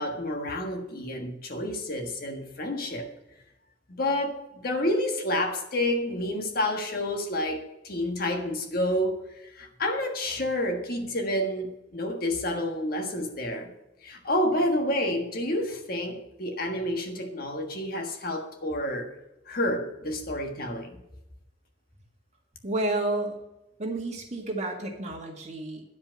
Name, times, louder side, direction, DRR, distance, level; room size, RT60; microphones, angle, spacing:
voice 1, 0.0-3.1 3.9-9.2 9.5-13.7 14.0-19.1 19.5-21.0, left 1 dB, 55° left, 1.5 m, -29 dB
voice 2, 22.6-23.4 23.8-25.8, right 2 dB, 40° right, 1.9 m, -30 dB
10.5 x 5.2 x 7.5 m
head